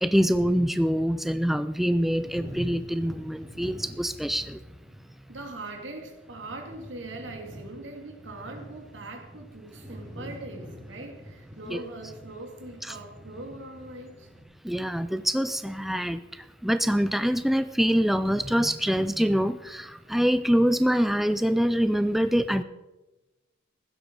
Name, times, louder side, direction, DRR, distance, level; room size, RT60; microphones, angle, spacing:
voice 1, 0.0-4.6 11.7-11.8 12.8-13.0 14.6-16.2 16.6-22.6, equal, ahead, 11 dB, 0.4 m, -25 dB
sound 1, 2.1-14.4, equal, 20° right, 4.6 m, -46 dB
voice 2, 5.3-14.3, right 2 dB, 80° right, 3 dB, 2.8 m, -41 dB
16.0 x 12.0 x 4.7 m, 1.1 s
head